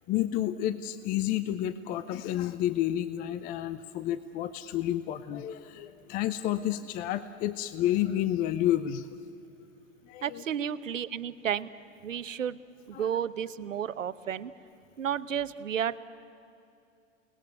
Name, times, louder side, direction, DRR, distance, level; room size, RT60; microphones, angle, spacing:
voice 1, 0.1-9.2 10.1-10.4 12.9-13.1, left 12 dB, 20° left, 13 dB, 0.6 m, -30 dB
voice 2, 10.2-11.7 12.0-12.6 12.9-14.5 15.0-16.0, right 9 dB, 70° right, 15 dB, 1.0 m, -32 dB
29.0 x 19.5 x 9.4 m, 2.7 s
figure-of-eight pair, 105°, 39 cm